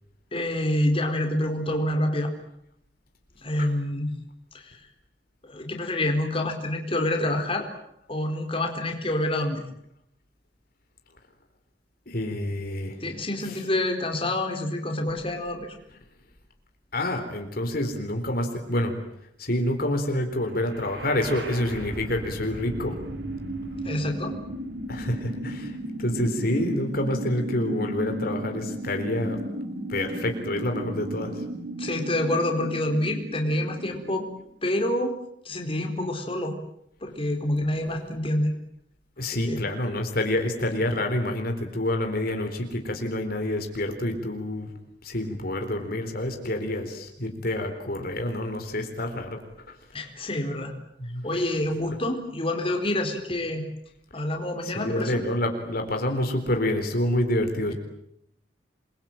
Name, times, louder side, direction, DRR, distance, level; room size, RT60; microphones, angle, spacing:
voice 1, 0.3-2.3 3.4-4.1 4.5-4.8 5.4-7.7 8.1-9.6 13.0-15.7 23.8-24.4 31.8-34.3 34.6-35.2 35.4-36.6 37.0-38.5 39.2-39.6 49.9-50.7 51.2-53.6 54.1-55.2, left 1 dB, 30° left, 3 dB, 4.3 m, -27 dB
voice 2, 12.1-13.0 16.9-18.9 19.4-23.0 24.9-25.7 26.0-29.4 29.9-31.3 33.6-33.7 37.9-38.0 39.2-44.7 45.0-49.4 51.1-51.2 54.6-57.7, left 1 dB, 55° left, 5 dB, 4.1 m, -28 dB
sound 1, 20.6-34.5, right 1 dB, 80° right, 6.0 m, -35 dB
28.5 x 23.0 x 9.1 m, 0.74 s
head